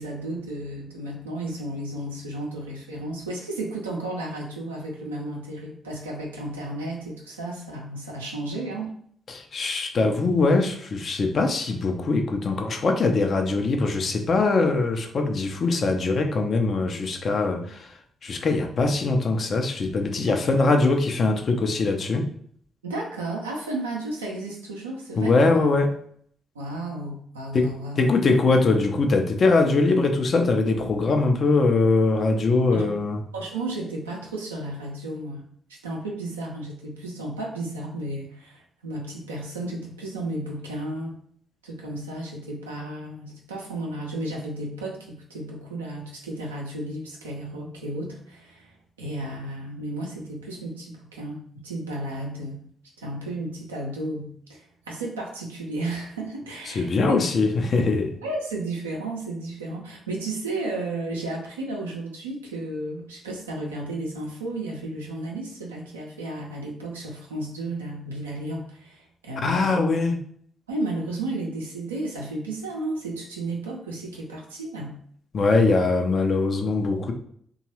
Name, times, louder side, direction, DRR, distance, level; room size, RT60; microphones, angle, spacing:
voice 1, 0.0-8.9 20.3-20.6 22.8-25.4 26.5-28.0 32.7-32.9 33.3-35.4 35.8-41.2 41.6-48.7 49.0-52.6 53.0-57.2 58.2-69.8 70.7-75.0, right 2 dB, 85° right, -2 dB, 0.5 m, -33 dB
voice 2, 9.3-22.3 25.2-26.0 27.5-33.2 56.7-58.2 69.4-70.2 75.3-77.1, left 3 dB, 50° left, 5 dB, 0.5 m, -22 dB
2.9 x 2.3 x 3.0 m, 0.62 s
figure-of-eight pair, 40°, 0 cm